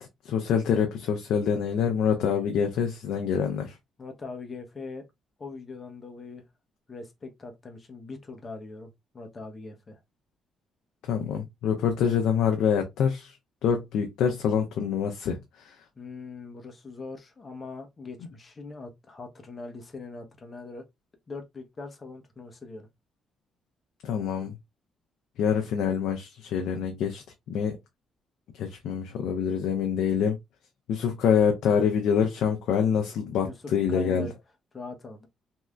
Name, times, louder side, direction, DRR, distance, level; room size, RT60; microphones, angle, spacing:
voice 1, 0.0-3.7 11.0-13.4 13.6-15.7 24.0-24.6 25.4-27.8 28.5-30.4 30.9-34.3, left 7 dB, 80° left, 0.5 m, -26 dB
voice 2, 4.0-5.0 5.4-6.4 6.9-10.0 16.0-20.8 21.3-22.9 33.4-33.6 33.9-34.3 34.7-35.3, left 3 dB, 35° left, 0.9 m, -41 dB
3.1 x 2.7 x 2.3 m
cardioid pair, 90°, 0 cm